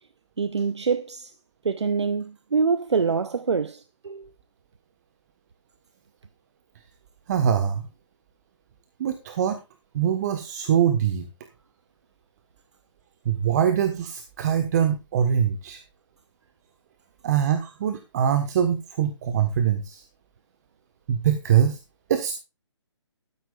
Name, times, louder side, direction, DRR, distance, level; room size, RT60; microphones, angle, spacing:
voice 1, 0.4-1.3 1.6-4.3, right 5 dB, 70° right, 0.8 m, -25 dB
voice 2, 7.3-7.8 9.0-9.6 9.9-11.3 13.2-15.8 17.2-20.0 21.1-21.8 22.1-22.4, right 9 dB, 35° right, 1.3 m, -23 dB
14.5 x 12.5 x 2.4 m
figure-of-eight pair, 140°, 15 cm